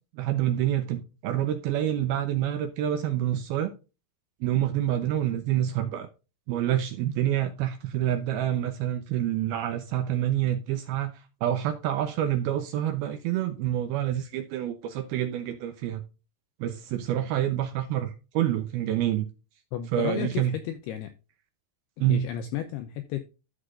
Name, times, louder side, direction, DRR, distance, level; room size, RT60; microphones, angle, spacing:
voice 1, 0.2-3.7 4.4-6.1 6.5-11.1 11.4-16.0 16.6-19.3 19.9-20.6 22.0-22.3, right 11 dB, 90° right, 2.1 m, -27 dB
voice 2, 19.7-21.1 22.1-23.2, left 10 dB, 90° left, 2.3 m, -32 dB
13.0 x 6.7 x 2.5 m
omnidirectional pair, 5.6 m